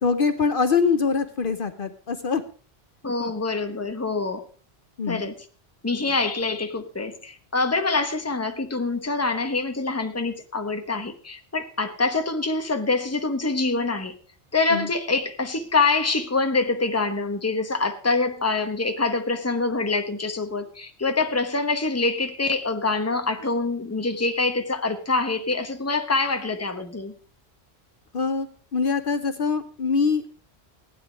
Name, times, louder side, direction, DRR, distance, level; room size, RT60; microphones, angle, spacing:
voice 1, 0.0-2.4 5.0-5.3 14.7-14.9 28.1-30.3, left 5 dB, 55° left, 10 dB, 1.0 m, -24 dB
voice 2, 3.0-4.5 5.1-5.4 5.8-14.1 14.5-27.1, left 3 dB, 15° left, 7 dB, 1.1 m, -25 dB
15.5 x 9.7 x 5.1 m, 0.40 s
omnidirectional pair, 1.1 m